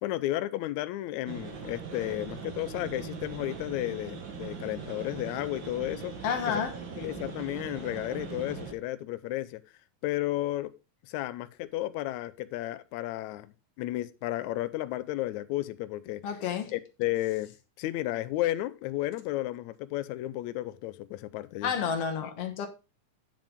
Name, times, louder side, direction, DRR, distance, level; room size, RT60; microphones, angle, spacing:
voice 1, 0.0-6.1 6.5-6.6 7.0-9.6 10.0-10.7 11.1-16.2 16.7-21.7, left 15 dB, 75° left, 1.8 m, -33 dB
sound 1, 1.3-8.7, right 5 dB, 50° right, 1.5 m, -40 dB
voice 2, 6.2-6.8 16.2-16.7 21.6-22.7, left 7 dB, 60° left, 1.8 m, -30 dB
9.0 x 7.5 x 3.6 m
omnidirectional pair, 3.8 m